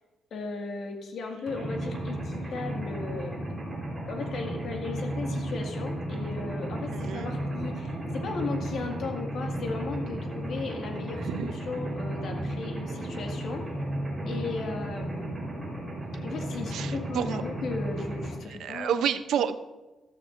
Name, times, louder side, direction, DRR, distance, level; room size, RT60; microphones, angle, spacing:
voice 1, 0.3-3.4 4.1-13.6 14.3-15.5 16.2-19.0 19.4-19.5, left 4 dB, 65° left, 2 dB, 1.9 m, -36 dB
Mechanisms, 1.5-18.3, right 1 dB, 15° right, 4.0 m, -34 dB
voice 2, 6.9-7.3 11.3-11.5 16.7-17.4 18.6-19.5, right 9 dB, 80° right, 11 dB, 0.6 m, -29 dB
14.0 x 13.5 x 2.6 m, 1.1 s
cardioid pair, 140°, 0 cm